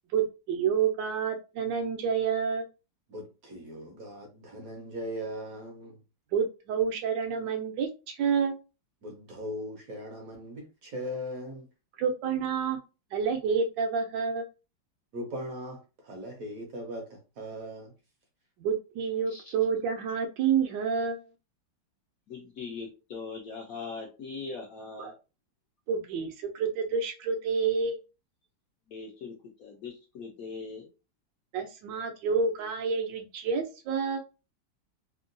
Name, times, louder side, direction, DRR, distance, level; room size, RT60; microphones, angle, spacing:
voice 1, 0.1-2.7 6.3-8.6 12.0-12.8 13.1-14.5 18.6-21.2 25.0-25.1 25.9-28.0 31.5-34.2, right 6 dB, 75° right, 1.3 m, -29 dB
voice 2, 3.1-6.0 9.0-11.6 15.1-17.9, equal, 60° right, 1.0 m, -39 dB
voice 3, 22.3-25.1 28.9-30.9, left 4 dB, 65° left, 0.9 m, -41 dB
3.5 x 2.2 x 2.5 m
omnidirectional pair, 2.0 m